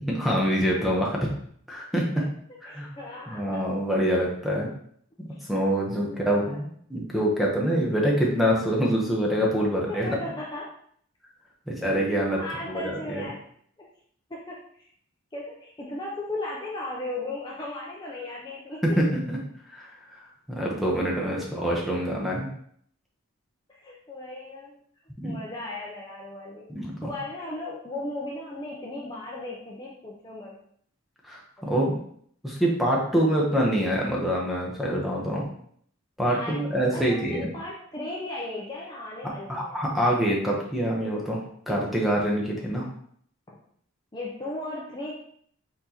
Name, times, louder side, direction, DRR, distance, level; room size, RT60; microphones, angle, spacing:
voice 1, 0.1-1.3 1.7-2.2 2.6-2.9 3.3-4.7 5.2-10.2 11.7-12.4 12.7-13.2 18.8-19.4 19.7-22.5 25.2-25.4 26.7-27.1 31.2-32.0 32.4-35.5 36.2-37.5 39.5-42.9, equal, ahead, -3 dB, 0.9 m, -25 dB
voice 2, 2.2-3.8 5.3-5.4 6.0-6.6 9.5-10.7 12.4-13.5 13.8-13.9 14.3-14.9 15.3-19.0 21.4-21.5 23.7-24.8 25.2-26.7 27.0-30.6 31.6-31.9 36.2-36.6 36.9-39.8 43.5-43.6 44.1-45.1, left 2 dB, 20° left, -4 dB, 0.5 m, -36 dB
4.4 x 4.0 x 2.9 m, 0.63 s
head